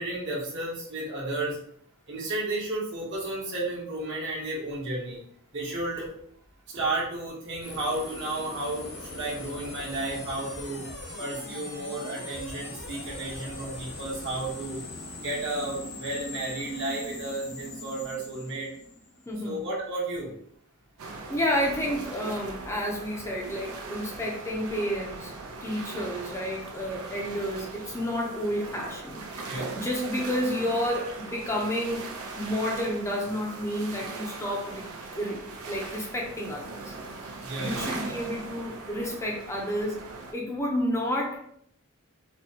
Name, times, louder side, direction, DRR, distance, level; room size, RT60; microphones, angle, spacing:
voice 1, 0.0-1.6 2.1-5.2 5.5-6.1 6.7-10.9 11.2-14.8 15.2-18.7 19.4-20.3 29.5-29.7 37.4-37.8, right 2 dB, 60° right, -4 dB, 1.1 m, -32 dB
sound 1, 7.6-19.6, left 2 dB, 65° left, 1.1 m, -41 dB
voice 2, 19.3-19.6 21.3-25.3 25.6-32.1 32.4-34.8 35.2-35.4 35.7-36.9 37.6-40.1 40.3-41.4, equal, 15° left, -2 dB, 0.5 m, -30 dB
sound 2, 21.0-40.3, right 3 dB, 85° right, 0.6 m, -39 dB
4.2 x 2.2 x 2.7 m, 0.66 s
head